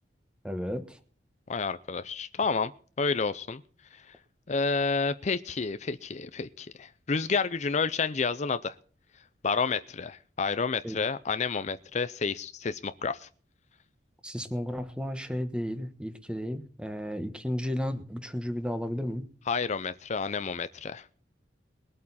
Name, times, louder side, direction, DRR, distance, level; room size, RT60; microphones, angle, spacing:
voice 1, 0.4-1.0 10.8-11.0 14.2-19.3, equal, 5° right, 1.3 m, -33 dB
voice 2, 1.5-2.7 3.0-3.6 3.9-4.1 4.5-8.7 9.4-13.3 19.5-21.1, left 4 dB, 40° left, 0.5 m, -30 dB
21.0 x 8.5 x 4.2 m
head